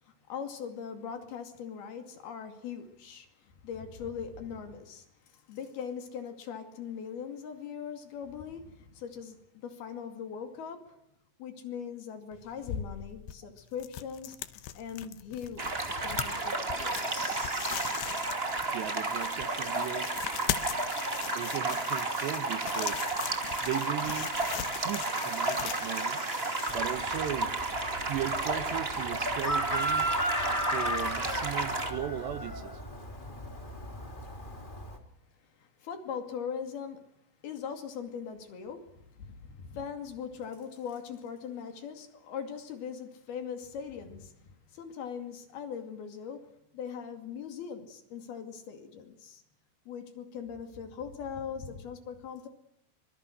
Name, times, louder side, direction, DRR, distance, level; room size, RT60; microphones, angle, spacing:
voice 1, 0.0-11.0 11.4-17.4 35.4-37.0 37.4-49.4 49.9-52.5, left 7 dB, 60° left, 4.1 m, -41 dB
sound 1, 12.3-27.5, left 12 dB, 75° left, 3.0 m, -40 dB
sound 2, 15.6-31.9, right 2 dB, 30° right, 1.0 m, -32 dB
voice 2, 18.7-20.2 21.3-23.1 23.6-24.3 24.7-26.2 26.7-27.6 28.0-30.1 30.7-32.8, right 12 dB, 75° right, 3.0 m, -37 dB
Chicken rooster, 26.7-35.0, equal, 15° left, 1.8 m, -35 dB
25.0 x 22.5 x 6.5 m
omnidirectional pair, 5.5 m